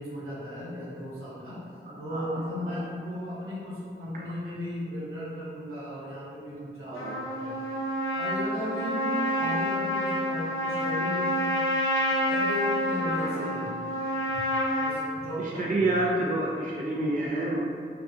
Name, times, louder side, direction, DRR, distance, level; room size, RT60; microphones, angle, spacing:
voice 1, 0.0-1.6 2.0-7.6 8.2-11.4 12.2-13.8 14.8-15.9, equal, 85° right, -9 dB, 0.9 m, -36 dB
voice 2, 2.1-2.8 6.9-7.1 15.4-17.6, right 2 dB, 40° right, -5 dB, 0.4 m, -28 dB
Trumpet, 7.0-15.0, equal, 80° left, 0.5 m, -28 dB
2.3 x 2.3 x 2.5 m, 2.3 s
cardioid pair, 50°, 21 cm